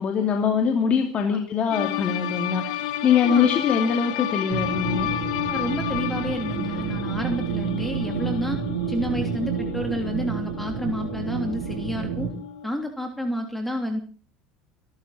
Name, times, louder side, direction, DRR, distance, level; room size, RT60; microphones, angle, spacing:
voice 1, 0.0-5.1, left 7 dB, 40° left, 3 dB, 2.7 m, -23 dB
sound 1, 1.7-12.7, left 13 dB, 80° left, 1.5 m, -32 dB
sound 2, 4.5-12.3, right 8 dB, 85° right, 4.0 m, -30 dB
voice 2, 5.5-8.6 8.9-12.3 12.6-14.0, equal, 5° left, 4 dB, 3.3 m, -30 dB
24.0 x 13.0 x 4.3 m, 0.40 s
supercardioid pair, 95°, 3 cm